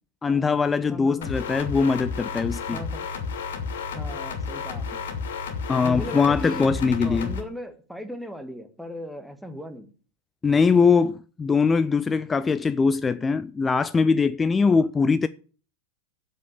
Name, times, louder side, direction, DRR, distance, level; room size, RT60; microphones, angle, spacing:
voice 1, 0.2-2.8 5.7-7.3 10.4-15.3, left 5 dB, 15° left, 0.5 m, -21 dB
voice 2, 0.9-1.4 2.7-3.1 3.9-5.0 5.8-6.8 7.0-9.9 14.7-14.9, left 1 dB, ahead, 1.6 m, -37 dB
sound 1, 1.2-7.4, left 5 dB, 60° left, 2.6 m, -32 dB
8.3 x 8.0 x 8.7 m
figure-of-eight pair, 90°, 0 cm